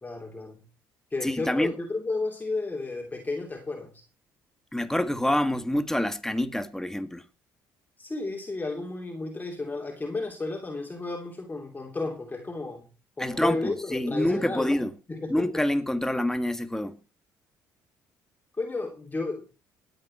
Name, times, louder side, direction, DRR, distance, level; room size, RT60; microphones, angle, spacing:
voice 1, 0.0-0.6 1.1-3.9 8.0-12.9 13.2-14.8 15.1-15.5 18.6-19.6, left 3 dB, 20° left, 3.1 m, -33 dB
voice 2, 1.2-1.7 4.7-7.2 13.2-15.0 15.3-17.0, left 1 dB, 5° left, 1.8 m, -27 dB
19.0 x 9.0 x 4.4 m
hypercardioid pair, 65°, 8 cm